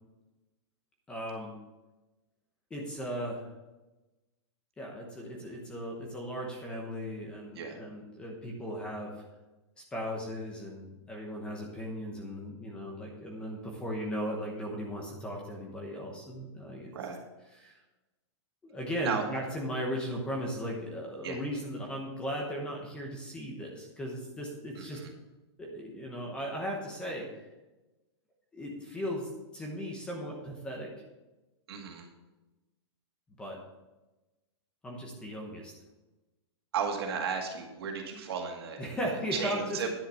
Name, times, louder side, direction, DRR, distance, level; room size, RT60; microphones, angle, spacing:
voice 1, 1.1-1.6 2.7-3.5 4.8-9.2 9.9-16.9 17.5-17.8 18.6-25.0 25.6-27.4 28.5-30.9 33.4-33.6 34.8-35.7 38.8-39.9, equal, 5° left, 0 dB, 1.0 m, -37 dB
voice 2, 24.8-25.1 31.7-32.1 36.7-39.9, right 6 dB, 60° right, 2 dB, 2.2 m, -35 dB
10.5 x 6.6 x 5.6 m, 1.1 s
supercardioid pair, 180°, 15 cm